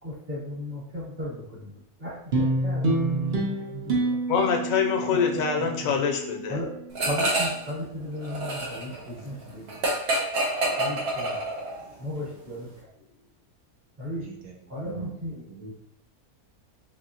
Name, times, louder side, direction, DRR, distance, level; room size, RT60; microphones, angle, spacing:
voice 1, 0.0-4.4 5.3-5.9 6.5-6.7 7.1-9.9 10.8-11.4 12.0-12.7 14.0-14.3 14.7-15.4, left 1 dB, 30° right, -5 dB, 1.0 m, -36 dB
sound 1, 2.3-6.9, right 2 dB, 50° right, 0.6 m, -28 dB
voice 2, 4.3-6.6, left 6 dB, 75° left, 3 dB, 1.0 m, -25 dB
sound 2, 7.0-7.7 8.0-11.8, right 1 dB, 85° right, 1.4 m, -27 dB
voice 3, 14.2-14.5 14.8-15.1 15.5-15.7, right 3 dB, 70° right, 0 dB, 1.2 m, -42 dB
4.9 x 2.7 x 2.8 m, 0.73 s
omnidirectional pair, 1.5 m